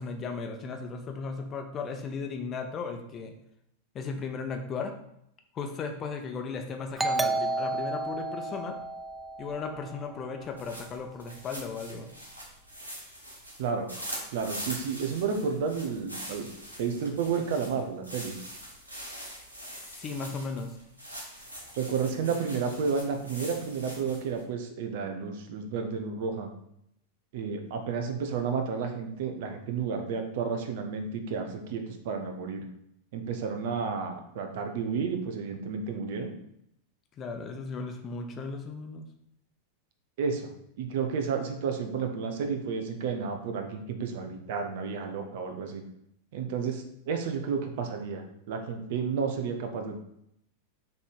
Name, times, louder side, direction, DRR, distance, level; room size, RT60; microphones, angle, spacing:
voice 1, 0.0-3.3 3.9-4.9 5.5-8.8 9.4-12.1 19.8-20.7 37.2-39.1, left 4 dB, 30° left, 5 dB, 0.9 m, -36 dB
Doorbell, 7.0-10.3, right 3 dB, 10° right, 0.3 m, -32 dB
sound 1, 10.4-24.4, equal, 80° right, 1.7 m, -43 dB
voice 2, 14.3-16.5 16.8-18.3 21.8-26.5 27.3-32.6 33.1-36.3 40.2-40.5 40.8-45.8 46.3-50.0, right 5 dB, 50° right, 6 dB, 0.9 m, -31 dB
6.2 x 3.4 x 5.5 m, 0.76 s
figure-of-eight pair, 90°, 0 cm